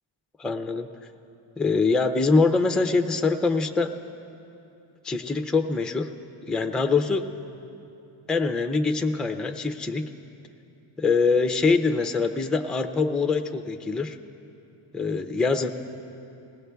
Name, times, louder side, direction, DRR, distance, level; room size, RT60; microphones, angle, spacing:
voice 1, 0.4-0.9 1.6-3.9 5.0-6.1 6.5-7.3 8.3-10.0 11.0-14.2 14.9-15.7, left 4 dB, ahead, 7 dB, 0.3 m, -24 dB
20.0 x 17.5 x 2.3 m, 2.7 s
cardioid pair, 115°, 50 cm